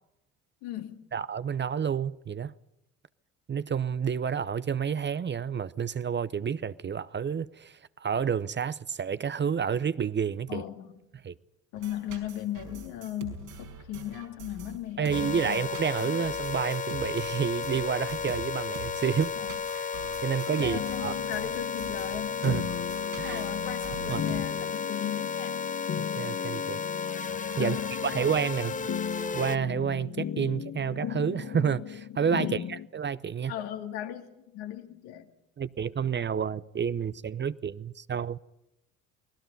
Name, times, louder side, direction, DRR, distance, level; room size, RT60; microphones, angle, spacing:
voice 1, 0.6-1.1 10.5-11.0 11.7-15.6 16.0-16.3 19.4-19.6 19.9-22.4 23.2-25.6 27.6-28.6 32.4-32.7 33.5-35.3, left 12 dB, 70° left, 2.4 m, -38 dB
voice 2, 1.1-2.5 3.5-10.6 11.2-11.3 15.0-19.3 20.2-21.1 22.4-22.6 23.2-23.4 24.1-24.3 26.0-26.8 27.6-28.8 29.3-33.5 35.6-38.4, right 7 dB, 30° right, 0.7 m, -29 dB
sound 1, 11.7-24.4, right 6 dB, 85° right, 5.5 m, -44 dB
sound 2, 15.1-29.6, left 6 dB, 20° left, 0.8 m, -33 dB
sound 3, 20.6-32.9, left 9 dB, 40° left, 1.0 m, -37 dB
29.0 x 20.0 x 5.4 m
hypercardioid pair, 60°, 39 cm